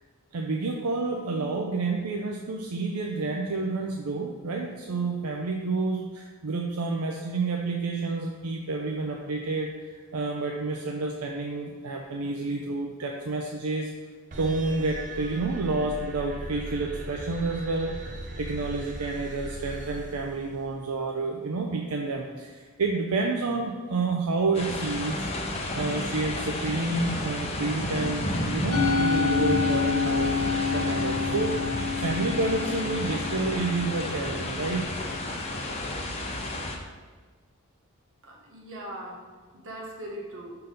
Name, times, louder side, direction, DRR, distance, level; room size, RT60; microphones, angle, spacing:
voice 1, 0.3-13.9 14.4-18.0 18.4-25.3 25.7-31.6 32.0-34.9, right 3 dB, 85° right, 1 dB, 0.5 m, -29 dB
sound 1, 14.3-20.9, right 1 dB, 35° right, 0.7 m, -39 dB
sound 2, 24.5-36.8, left 1 dB, 30° left, 0.8 m, -31 dB
Musical instrument, 28.7-35.1, left 6 dB, 75° left, 0.7 m, -28 dB
voice 2, 38.2-39.3 39.5-40.6, right 1 dB, 65° right, -1 dB, 1.3 m, -40 dB
5.7 x 3.9 x 5.1 m, 1.5 s
head